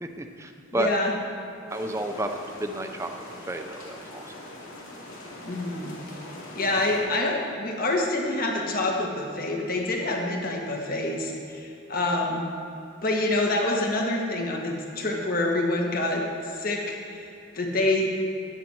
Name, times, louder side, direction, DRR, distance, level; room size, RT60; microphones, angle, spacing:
voice 1, 0.0-0.9 1.6-3.1 3.4-4.2, right 1 dB, 15° right, 5 dB, 0.6 m, -31 dB
voice 2, 0.7-1.1 5.4-6.0 6.5-12.5 13.0-17.2 17.5-18.1, left 2 dB, 45° left, 0 dB, 1.6 m, -26 dB
sound 1, 1.7-7.0, left 1 dB, 85° left, 2.6 m, -42 dB
13.0 x 10.0 x 4.6 m, 2.6 s
head